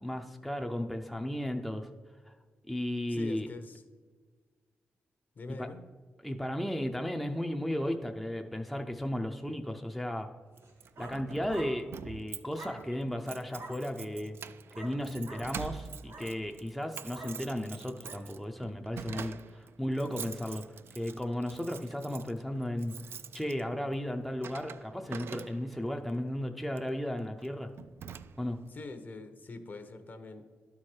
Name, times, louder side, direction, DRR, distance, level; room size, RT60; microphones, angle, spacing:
voice 1, 0.0-1.9 2.3-2.4 2.7-3.5 5.6-5.7 6.2-10.3 11.0-14.4 14.8-20.6 21.0-23.0 23.3-27.7 28.4-28.6, left 1 dB, ahead, 3 dB, 0.5 m, -35 dB
voice 2, 3.1-3.8 5.4-5.9 28.7-30.5, left 3 dB, 45° left, 8 dB, 0.8 m, -44 dB
Keys jangling, 10.6-25.9 26.7-26.9 27.4-27.5 27.8-28.7, right 7 dB, 65° right, 0.3 m, -46 dB
sound 1, 10.6-11.2 11.5-11.7 12.5-12.8 13.5-13.8 14.7-15.0 15.2-15.5 16.0-16.3 17.1-17.4 18.0-18.2 19.1-19.3, right 2 dB, 85° right, 2.8 m, -47 dB
12.0 x 4.8 x 4.4 m, 1.5 s
wide cardioid pair, 115°, 4 cm